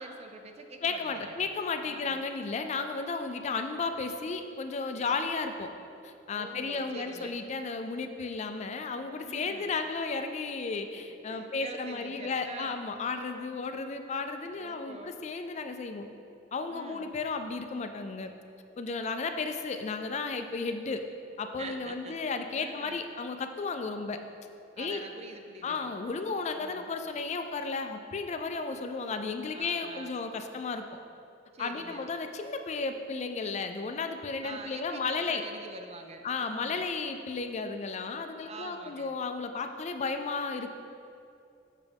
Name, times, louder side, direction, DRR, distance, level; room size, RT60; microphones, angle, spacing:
voice 1, 0.0-1.5 1.8-2.2 6.3-7.4 9.2-9.8 11.3-12.9 14.5-15.2 16.7-17.1 21.6-23.1 24.8-25.9 26.6-26.9 29.5-30.2 31.5-32.1 34.4-36.9 38.4-39.1, right 3 dB, 35° right, 5 dB, 0.5 m, -46 dB
voice 2, 0.8-5.7 6.0-16.1 16.5-18.3 18.8-21.0 21.4-24.2 24.8-25.0 25.6-30.8 31.6-35.4 36.2-40.7, left 4 dB, 40° left, 7 dB, 0.4 m, -34 dB
7.1 x 6.4 x 3.5 m, 2.6 s
head